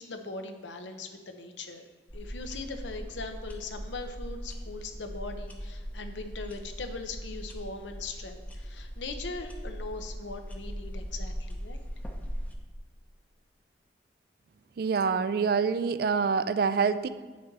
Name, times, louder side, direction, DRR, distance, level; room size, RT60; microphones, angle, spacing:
voice 1, 0.0-1.9 2.1-11.8, left 3 dB, 85° left, 7 dB, 0.8 m, -40 dB
sound 1, 2.1-12.6, equal, 10° left, 0.7 m, -39 dB
voice 2, 14.8-17.1, right 5 dB, 55° right, 13 dB, 0.3 m, -26 dB
8.4 x 6.3 x 4.0 m, 1.3 s
head